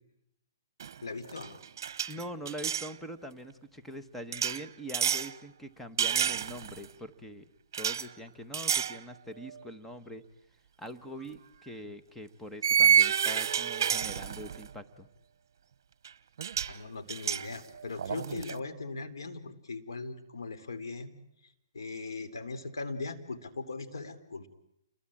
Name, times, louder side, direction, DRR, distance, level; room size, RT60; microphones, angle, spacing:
sound 1, 0.8-1.0 1.3-2.9 4.3-5.3 6.0-6.9 7.7-8.1 8.5-9.0 9.4-9.6 11.1-11.3 12.6-14.7 16.0-16.1 16.4-16.8 17.1-18.6, right 8 dB, 60° right, 1.0 m, -29 dB
voice 1, 1.0-1.6 16.7-21.1 21.4-24.5, left 3 dB, 90° left, 10 dB, 3.4 m, -39 dB
voice 2, 2.1-7.4 7.8-10.2 10.8-15.1, equal, 5° left, 6 dB, 1.1 m, -43 dB
29.5 x 22.0 x 8.7 m, 0.78 s
hypercardioid pair, 155°, 2 cm